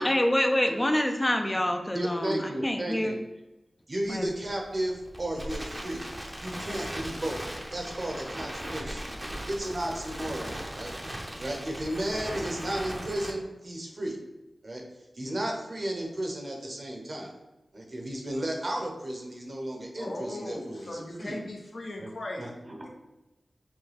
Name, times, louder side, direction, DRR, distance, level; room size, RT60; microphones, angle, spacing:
voice 1, 0.0-3.2 4.1-4.3, left 1 dB, 20° left, 5 dB, 0.5 m, -26 dB
voice 2, 1.9-3.2 3.9-6.0 6.4-7.4 7.7-9.0 9.5-10.9 11.4-14.2 14.6-14.8 15.1-17.3 17.7-21.4 22.0-22.1 22.4-22.9, right 1 dB, 45° right, 0 dB, 0.9 m, -34 dB
Crackle, 4.1-13.3, right 1 dB, 20° right, 0.7 m, -38 dB
voice 3, 20.0-22.4, left 1 dB, 65° left, 0 dB, 0.8 m, -38 dB
6.2 x 2.2 x 3.4 m, 1.0 s
wide cardioid pair, 90°, 0 cm